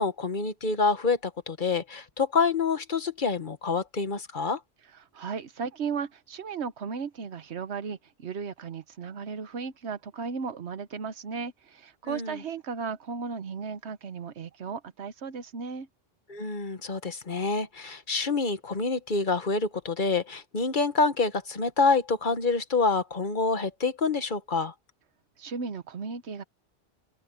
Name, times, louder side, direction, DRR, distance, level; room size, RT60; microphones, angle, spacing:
voice 1, 0.0-4.6 12.0-12.3 16.3-24.7, left 4 dB, 50° left, 1.3 m, -27 dB
voice 2, 5.1-15.9 25.4-26.4, right 5 dB, 80° right, 1.3 m, -35 dB
open air
omnidirectional pair, 1.1 m